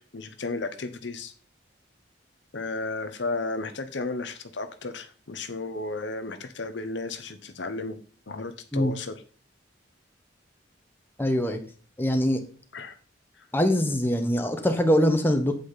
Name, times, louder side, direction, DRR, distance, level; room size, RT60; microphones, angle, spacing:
voice 1, 0.0-1.3 2.5-8.0 8.3-9.2 12.7-13.0 13.4-13.5, left 3 dB, 70° left, 9 dB, 0.9 m, -34 dB
voice 2, 11.2-11.6 12.0-12.4 13.5-15.5, equal, 10° left, 5 dB, 1.2 m, -23 dB
8.4 x 8.4 x 4.0 m, 0.40 s
head